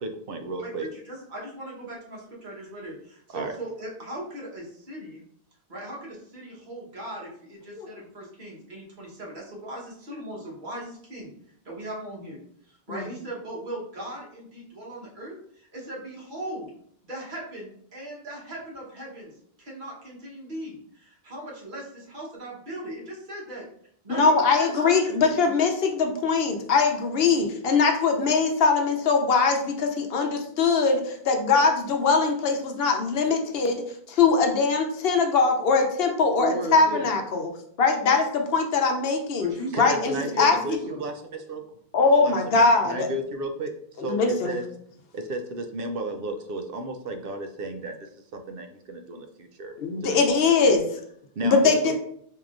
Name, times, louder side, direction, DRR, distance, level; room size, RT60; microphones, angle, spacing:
voice 1, 0.0-0.9 3.3-3.5 39.7-41.6 42.2-43.7 44.0-44.6 45.1-49.7 50.0-50.2 51.4-51.9, right 2 dB, 70° right, 5 dB, 0.7 m, -33 dB
voice 2, 0.6-5.2 5.7-11.3 11.6-12.4 12.7-16.7 17.0-23.6 24.1-25.3 27.3-27.5 36.4-37.1 39.4-41.0, right 1 dB, 50° right, -4 dB, 1.3 m, -38 dB
voice 3, 24.1-37.5 37.8-40.6 41.9-43.1 44.0-44.6 49.8-50.8 51.4-52.0, left 4 dB, 75° left, 4 dB, 0.8 m, -22 dB
4.6 x 2.8 x 2.5 m, 0.66 s
omnidirectional pair, 1.0 m